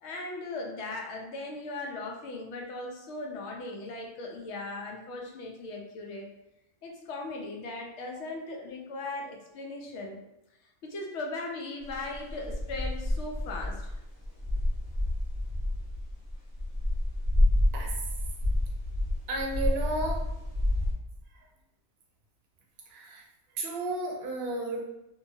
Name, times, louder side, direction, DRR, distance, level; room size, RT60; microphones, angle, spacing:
voice 1, 0.0-6.3 6.8-10.2 10.8-14.0, left 2 dB, 65° left, 0 dB, 0.8 m, -38 dB
sound 1, 11.9-20.9, left 1 dB, 25° right, 0.4 m, -29 dB
voice 2, 19.3-20.2 22.9-23.2 23.5-24.9, right 2 dB, 60° right, 0 dB, 0.8 m, -32 dB
2.7 x 2.2 x 2.7 m, 0.86 s
omnidirectional pair, 1.5 m